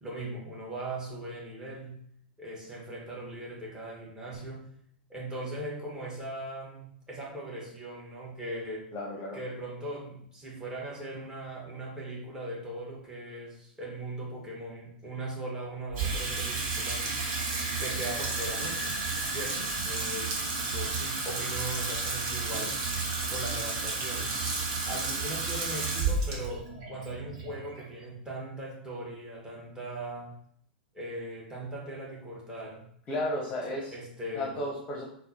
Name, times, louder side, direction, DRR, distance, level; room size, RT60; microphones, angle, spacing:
voice 1, 0.0-2.0 2.4-4.7 5.1-8.9 9.3-17.1 17.7-19.0 19.3-22.8 23.3-24.4 24.8-30.4 30.9-32.9 33.9-34.5, right 1 dB, 15° right, -4 dB, 1.1 m, -39 dB
voice 2, 8.9-9.4 33.1-33.9 34.3-35.1, left 1 dB, 30° left, -4 dB, 0.7 m, -33 dB
Water tap faucet / Sink (filling or washing), 15.9-28.3, right 3 dB, 50° right, 0.8 m, -32 dB
4.1 x 2.1 x 2.7 m, 0.67 s
hypercardioid pair, 100°, 5 cm